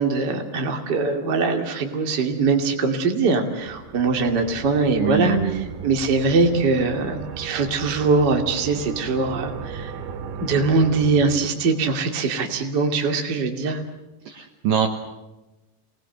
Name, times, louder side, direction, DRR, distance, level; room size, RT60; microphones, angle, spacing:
voice 1, 0.0-9.9 10.4-13.8, right 4 dB, 30° right, 3 dB, 2.2 m, -22 dB
sound 1, 3.6-12.1, right 6 dB, 80° right, 3.9 m, -36 dB
voice 2, 5.0-5.7 14.3-14.9, right 9 dB, 65° right, 3 dB, 2.6 m, -23 dB
28.5 x 19.5 x 7.9 m, 1.1 s
omnidirectional pair, 5.1 m